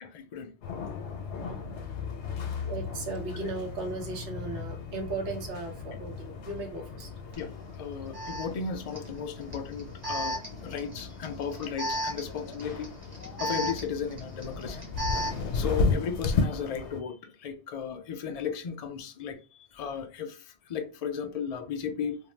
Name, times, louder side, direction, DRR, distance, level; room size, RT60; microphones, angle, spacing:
voice 1, 0.1-0.5 7.4-7.5 7.8-12.9 13.4-14.8 15.5-22.2, left 6 dB, 60° left, 0.4 m, -35 dB
sound 1, 0.6-17.0, left 4 dB, 85° left, 0.9 m, -35 dB
voice 2, 2.6-7.1, right 3 dB, 90° right, 1.1 m, -36 dB
Alarm, 7.3-7.4 8.1-15.5, right 1 dB, 25° right, 0.9 m, -36 dB
2.6 x 2.1 x 3.1 m
omnidirectional pair, 1.1 m